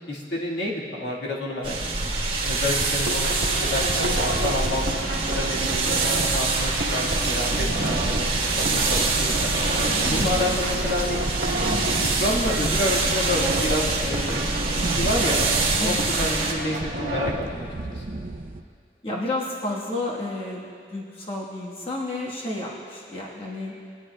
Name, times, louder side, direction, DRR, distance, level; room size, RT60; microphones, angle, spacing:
voice 1, 0.1-1.7 2.0-2.1 2.4-4.9 5.3-5.9 6.3-9.6 10.1-11.2 11.6-15.4 15.8-18.0, left 1 dB, 80° left, -4 dB, 1.7 m, -29 dB
sound 1, 1.6-16.5, right 3 dB, 30° right, 1.2 m, -25 dB
sound 2, 2.8-17.4, right 1 dB, 80° right, 1.0 m, -31 dB
sound 3, 7.5-18.6, right 2 dB, 50° right, 0.5 m, -34 dB
voice 2, 19.0-23.8, left 2 dB, 35° left, -4 dB, 1.3 m, -31 dB
19.5 x 9.9 x 2.2 m, 2.2 s
head